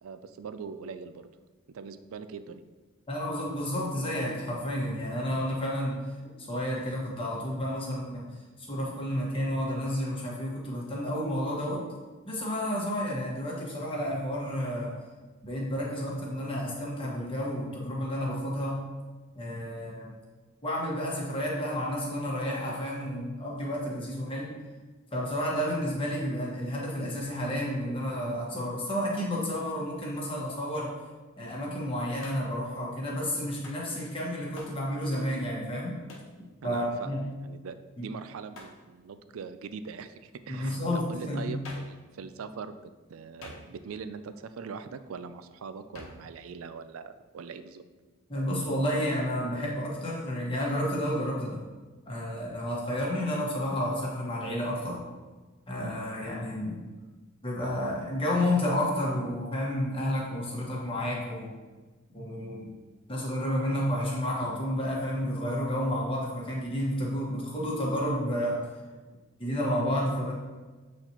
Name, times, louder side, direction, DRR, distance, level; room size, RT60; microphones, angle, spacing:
voice 1, 0.0-1.3 1.7-2.6 36.6-37.1 37.4-42.8 43.1-47.8, right 5 dB, 75° right, 11 dB, 0.4 m, -41 dB
voice 2, 3.1-6.0 6.4-8.2 8.6-11.8 12.3-14.9 15.4-18.8 19.3-20.1 20.6-24.5 25.1-30.9 31.4-36.0 36.6-37.2 38.0-38.1 40.5-41.6 48.3-51.6 52.1-55.0 55.7-56.8 57.4-61.5 62.1-62.7 63.1-68.6 69.4-70.3, equal, 25° left, -4 dB, 1.4 m, -31 dB
Hands, 32.2-32.6 33.6-33.9 34.6-34.8 36.1-36.4 38.5-38.8 41.6-42.0 43.4-44.0 45.9-46.3, left 2 dB, 75° left, 1.1 m, -47 dB
7.8 x 4.2 x 2.9 m, 1.3 s
head